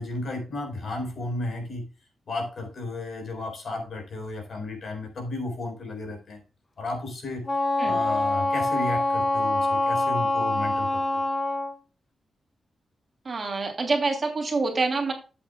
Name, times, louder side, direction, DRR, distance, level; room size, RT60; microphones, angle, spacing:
voice 1, 0.0-1.9 2.3-6.4 6.8-7.5 7.8-11.2, left 2 dB, 50° left, 2 dB, 4.3 m, -33 dB
Wind instrument woodwind instrument, 7.4-11.7, left 2 dB, 30° left, 1.8 m, -25 dB
voice 2, 13.2-15.1, right 3 dB, 40° right, 3 dB, 2.8 m, -26 dB
13.0 x 8.3 x 2.3 m, 0.33 s
wide cardioid pair, 135°, 0 cm